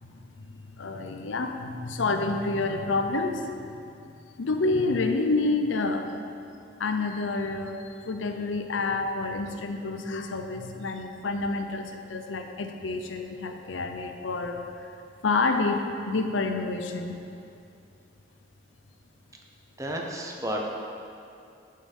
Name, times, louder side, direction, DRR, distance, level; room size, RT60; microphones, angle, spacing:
voice 1, 0.0-3.5 4.4-6.0 6.8-14.6 15.2-15.8 16.1-17.1, left 3 dB, 85° left, 5 dB, 0.6 m, -28 dB
voice 2, 19.8-20.6, equal, 15° right, 0 dB, 0.8 m, -31 dB
8.6 x 5.7 x 5.4 m, 2.5 s
head